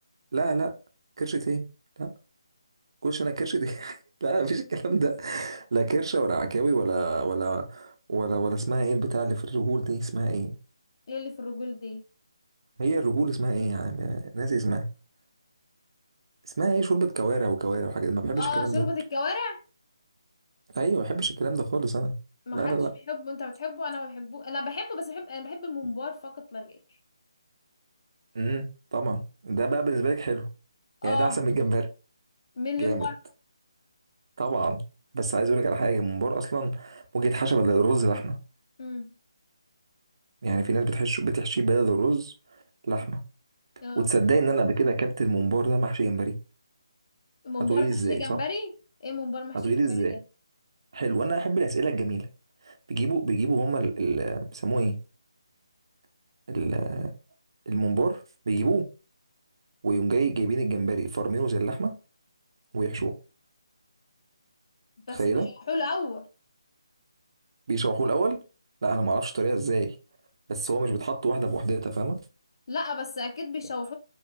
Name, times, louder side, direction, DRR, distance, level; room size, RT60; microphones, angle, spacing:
voice 1, 0.3-0.7 1.2-1.7 2.0-2.1 3.0-10.6 12.8-14.8 16.6-18.9 20.7-22.2 22.5-22.9 28.3-28.7 28.9-30.5 31.0-31.9 32.8-33.1 34.4-34.8 35.1-38.4 40.4-42.3 42.8-43.2 44.0-46.4 47.7-48.4 49.5-50.2 50.9-52.3 52.7-55.0 56.5-57.1 57.7-58.9 59.8-61.9 62.7-63.1 65.1-65.5 67.7-68.4 68.8-69.9 70.5-72.2, right 3 dB, 55° right, 0.5 m, -26 dB
voice 2, 11.1-12.0 18.4-19.6 22.5-26.8 31.0-31.4 32.6-33.2 38.8-39.1 43.8-44.1 47.4-48.7 49.0-49.7 50.1-50.2 65.1-66.3 72.7-73.9, left 3 dB, 50° left, 0.5 m, -32 dB
3.0 x 2.5 x 2.4 m
figure-of-eight pair, 150°, 3 cm